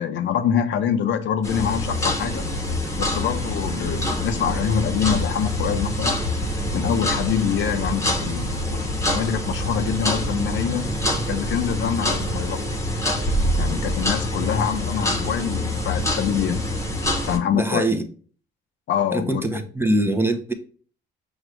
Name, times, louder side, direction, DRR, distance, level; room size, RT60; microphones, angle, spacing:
voice 1, 0.0-2.5 3.0-6.2 6.7-10.9 11.3-12.6 13.6-16.6 17.2-17.9 18.9-19.4, left 8 dB, 70° left, 0.6 m, -25 dB
sound 1, 1.4-17.4, left 1 dB, 15° left, 0.9 m, -25 dB
voice 2, 17.5-18.0 19.1-20.5, right 1 dB, 10° right, 0.6 m, -23 dB
6.1 x 2.4 x 3.1 m
cardioid pair, 90°, 20 cm